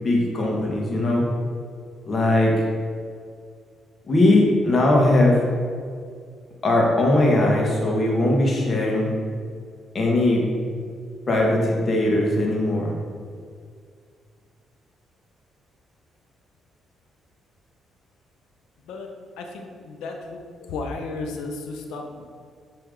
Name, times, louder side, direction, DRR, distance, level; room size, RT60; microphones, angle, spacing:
voice 1, 0.0-1.2 2.1-2.5 4.1-5.4 6.6-9.1 9.9-10.4 11.3-12.9, left 1 dB, 40° left, -2 dB, 1.6 m, -19 dB
voice 2, 19.4-22.2, left 3 dB, 90° left, 3 dB, 0.7 m, -34 dB
8.2 x 3.5 x 3.8 m, 2.1 s
cardioid pair, 90°, 0 cm